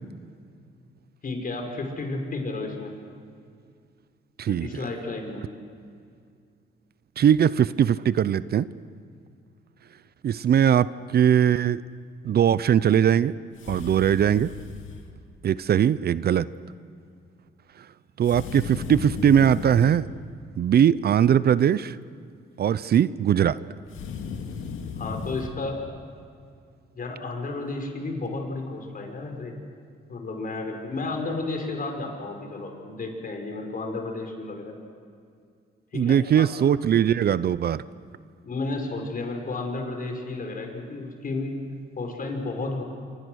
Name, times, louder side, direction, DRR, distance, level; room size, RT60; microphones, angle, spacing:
voice 1, 1.2-2.9 4.5-5.4 25.0-25.8 27.0-29.5 30.1-34.7 35.9-36.5 38.4-41.5 42.0-42.8, left 3 dB, 45° left, 3 dB, 5.3 m, -32 dB
voice 2, 4.4-4.8 7.2-8.7 10.2-11.8 12.2-13.3 13.7-14.5 15.4-16.5 18.2-20.1 20.6-22.0 22.6-23.6 35.9-37.8, right 9 dB, 55° right, 17 dB, 0.6 m, -20 dB
sound 1, 13.6-15.1 18.2-20.0 23.9-25.5, left 5 dB, 80° left, 2.5 m, -35 dB
26.5 x 25.0 x 6.4 m, 2.3 s
cardioid pair, 90°, 20 cm